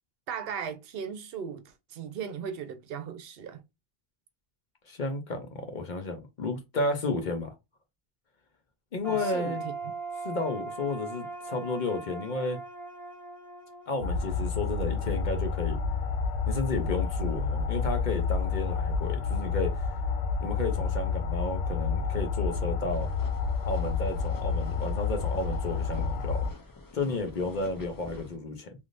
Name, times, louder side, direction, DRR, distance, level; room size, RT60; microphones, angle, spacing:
voice 1, 0.3-3.6 9.0-9.7, right 7 dB, 70° right, 0.8 m, -37 dB
voice 2, 4.9-7.5 8.9-9.6 10.2-12.6 13.9-15.8 16.5-19.9 20.4-23.1 23.6-26.4 26.9-28.7, left 3 dB, 50° left, 0.8 m, -32 dB
sound 1, 9.0-14.9, right 4 dB, ahead, 1.6 m, -40 dB
sound 2, 14.0-26.5, left 5 dB, 90° left, 0.8 m, -29 dB
sound 3, 22.9-28.4, left 3 dB, 30° left, 0.4 m, -48 dB
3.4 x 2.6 x 2.5 m
omnidirectional pair, 1.0 m